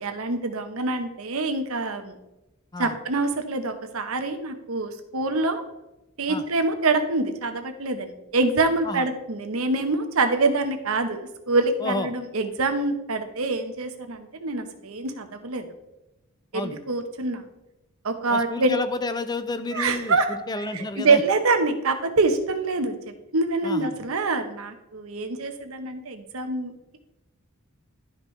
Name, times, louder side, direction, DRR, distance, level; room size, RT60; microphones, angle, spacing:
voice 1, 0.0-2.2 2.8-5.6 6.2-15.7 16.5-17.4 18.0-18.8 19.7-20.3 20.6-26.7, right 3 dB, 70° right, 7 dB, 0.9 m, -25 dB
voice 2, 18.3-21.2 23.6-23.9, left 2 dB, 20° left, 11 dB, 0.5 m, -31 dB
11.5 x 5.1 x 3.2 m, 0.95 s
head